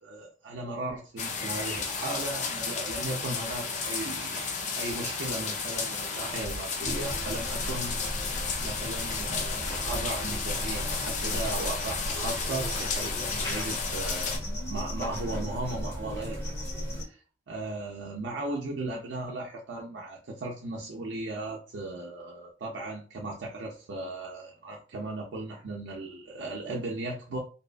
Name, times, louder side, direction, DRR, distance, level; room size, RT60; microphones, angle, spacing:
voice 1, 0.0-8.0 8.6-14.4 14.7-16.4 17.0-27.4, right 2 dB, 85° right, -2 dB, 0.5 m, -36 dB
sound 1, 1.2-14.4, left 5 dB, 45° left, 0.5 m, -33 dB
sound 2, 6.8-17.0, equal, 20° left, 1.0 m, -36 dB
2.6 x 2.2 x 2.4 m, 0.36 s
head